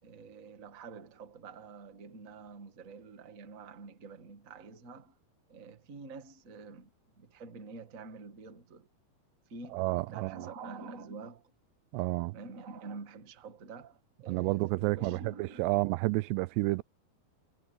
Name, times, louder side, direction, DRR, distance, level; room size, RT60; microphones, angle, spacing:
voice 1, 0.0-5.2 5.5-6.9 7.2-8.9 9.5-11.4 12.3-15.8, right 4 dB, 35° right, 1.2 m, -47 dB
voice 2, 9.7-10.5 11.9-12.4 14.3-16.8, right 22 dB, 85° right, 2.7 m, -30 dB
omnidirectional pair, 4.8 m